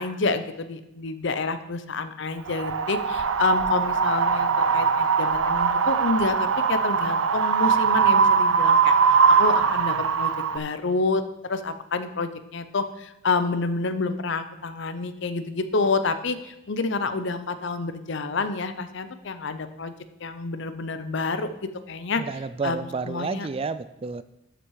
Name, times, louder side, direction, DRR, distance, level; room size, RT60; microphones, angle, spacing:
voice 1, 0.0-19.9 20.2-22.2 22.6-23.5, left 3 dB, 60° left, 11 dB, 0.7 m, -28 dB
Wind, 2.5-10.6, right 6 dB, 85° right, 0.6 m, -21 dB
voice 2, 22.2-24.2, right 4 dB, 30° right, 14 dB, 0.3 m, -30 dB
12.0 x 6.0 x 4.8 m, 0.87 s
head